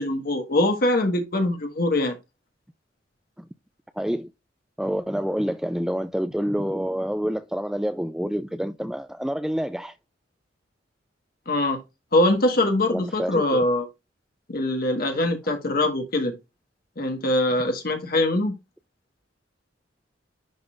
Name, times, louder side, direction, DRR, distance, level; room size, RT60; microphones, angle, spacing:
voice 1, 0.0-2.1 11.5-11.8 12.1-13.9 14.5-16.3 17.0-18.5, left 1 dB, 55° left, 1.5 m, -23 dB
voice 2, 4.0-4.3 4.8-9.9 12.9-13.6, equal, 5° right, 0.3 m, -27 dB
10.5 x 3.8 x 2.5 m
head